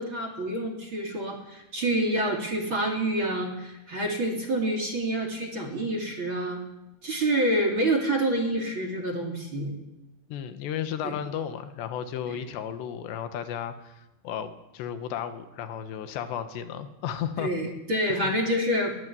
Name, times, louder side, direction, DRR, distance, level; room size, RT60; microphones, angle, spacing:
voice 1, 0.0-6.6 7.0-9.8 11.0-11.2 12.3-12.4 17.4-19.0, right 1 dB, 30° right, 3 dB, 3.1 m, -27 dB
voice 2, 10.3-13.9 14.2-17.5 18.1-18.3, left 9 dB, 85° left, 9 dB, 3.6 m, -34 dB
22.0 x 17.5 x 8.4 m, 1.0 s
omnidirectional pair, 4.9 m